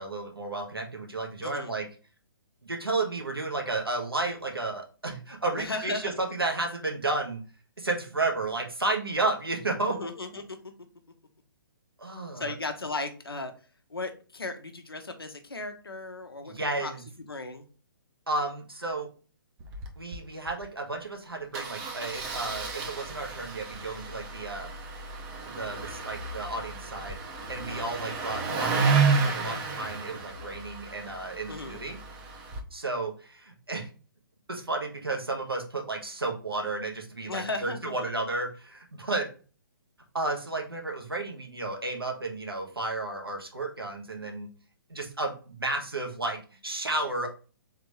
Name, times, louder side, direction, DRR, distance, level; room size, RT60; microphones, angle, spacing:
voice 1, 0.0-1.9 2.6-7.4 7.8-10.0 12.0-12.5 16.4-17.0 18.3-19.1 20.0-24.7 25.4-27.2 27.5-32.0 32.7-33.9 34.5-39.3 40.1-44.5 44.9-47.3, right 2 dB, 85° right, 1 dB, 1.3 m, -32 dB
voice 2, 1.4-1.7 5.5-6.1 9.9-10.6 12.3-13.5 13.9-16.9 17.3-17.6 27.7-27.9 31.5-31.8 37.3-37.9, left 3 dB, 80° left, 6 dB, 0.8 m, -36 dB
Engine starting, 19.6-19.9 20.1-20.2 20.5-20.6 21.5-32.6, right 4 dB, 20° right, 0.6 m, -31 dB
3.7 x 3.4 x 3.0 m, 0.36 s
figure-of-eight pair, 130°, 12 cm